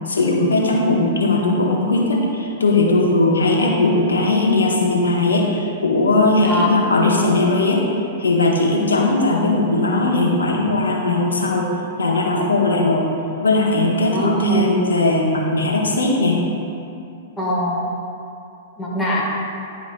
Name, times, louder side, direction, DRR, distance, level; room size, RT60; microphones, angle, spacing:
voice 1, 0.1-7.8 8.2-11.7 12.0-13.1 13.4-16.4, left 2 dB, 80° left, -1 dB, 1.0 m, -18 dB
voice 2, 6.4-6.9 14.1-14.8 17.4-17.9 18.8-19.2, right 1 dB, 10° left, -6 dB, 1.4 m, -21 dB
9.8 x 5.1 x 2.3 m, 2.6 s
figure-of-eight pair, 105°, 0 cm